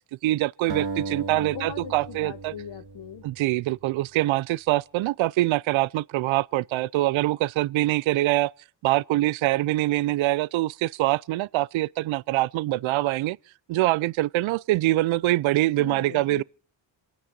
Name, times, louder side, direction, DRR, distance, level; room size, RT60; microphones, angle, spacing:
voice 1, 0.2-2.5 3.2-8.5 8.8-13.4 13.7-16.4, right 17 dB, 70° right, 0.6 m, -24 dB
sound 1, 0.7-3.9, right 4 dB, 50° right, 1.9 m, -36 dB
voice 2, 1.3-3.2 15.8-16.4, left 9 dB, 55° left, 1.1 m, -40 dB
27.5 x 9.4 x 3.9 m
supercardioid pair, 55°, 49 cm